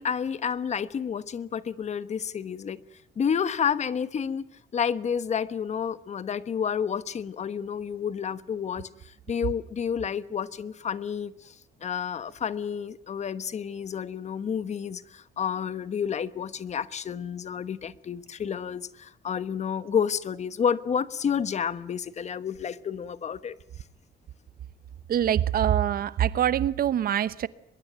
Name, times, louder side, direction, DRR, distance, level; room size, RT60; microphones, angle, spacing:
voice 1, 0.0-2.8 3.2-4.5 4.7-11.5 11.8-23.5, left 7 dB, 40° left, 1.2 m, -30 dB
voice 2, 25.1-27.5, right 10 dB, 60° right, 1.0 m, -24 dB
23.5 x 22.0 x 9.2 m
cardioid pair, 155°, 17 cm